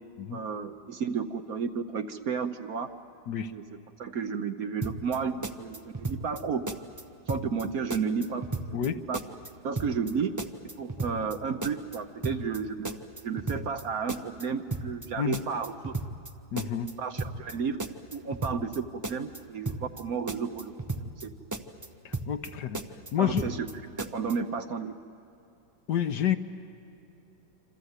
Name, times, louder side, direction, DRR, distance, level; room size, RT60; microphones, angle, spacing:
voice 1, 0.3-2.9 3.5-3.7 4.0-6.6 7.3-9.2 9.6-10.4 10.8-16.0 16.6-16.7 17.0-17.8 18.1-21.3 23.2-24.9, right 6 dB, 60° right, 8 dB, 1.1 m, -32 dB
sound 1, 4.8-5.2 5.4-6.4 6.7-7.0 7.3-7.6 7.9-8.9 9.1-9.5 9.8-10.1 10.4-11.4 11.6-12.0 12.2-12.6 12.9-13.8 14.1-14.4 14.7-15.1 15.3-16.3 16.6-16.9 17.2-17.5 17.8-18.8 19.0-19.4 19.7-20.0 20.3-21.3 21.5-21.9 22.1-22.5 22.7-23.7 24.0-24.3, right 2 dB, 25° right, 0.4 m, -34 dB
voice 2, 16.5-16.9 22.3-22.8 23.1-23.4 25.9-26.4, left 9 dB, 65° left, 9 dB, 1.4 m, -28 dB
27.0 x 26.5 x 8.1 m, 2.8 s
omnidirectional pair, 2.0 m